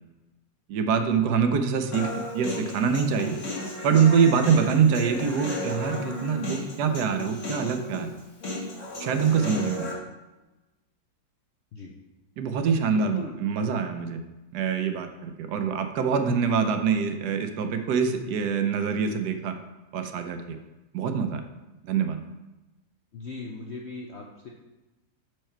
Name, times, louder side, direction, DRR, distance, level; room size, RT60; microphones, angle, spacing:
voice 1, 0.7-3.4 3.8-8.1 9.0-9.9 12.4-14.2 14.5-19.6 19.9-20.6 20.9-21.4 21.8-22.2, right 6 dB, 75° right, 7 dB, 1.2 m, -24 dB
Human voice, 1.9-9.9, left 1 dB, 50° left, 1.4 m, -34 dB
voice 2, 12.9-13.4 23.1-24.5, left 3 dB, 65° left, 0 dB, 0.6 m, -39 dB
5.5 x 4.8 x 4.4 m, 1.1 s
omnidirectional pair, 1.8 m